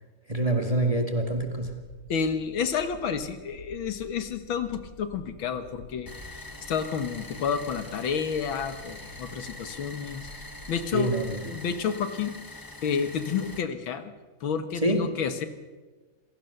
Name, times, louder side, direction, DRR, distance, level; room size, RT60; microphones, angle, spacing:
voice 1, 0.3-1.8 10.9-11.6 14.7-15.2, right 1 dB, 20° right, 3 dB, 1.9 m, -26 dB
sound 1, 1.3-11.4, equal, 50° left, 8.6 m, -49 dB
voice 2, 2.1-11.2 11.5-12.4 12.8-14.1 14.4-15.5, left 6 dB, 80° left, 10 dB, 2.2 m, -30 dB
sound 2, 6.1-13.6, left 2 dB, 15° left, 1.1 m, -44 dB
27.5 x 16.5 x 6.7 m, 1.3 s
omnidirectional pair, 2.2 m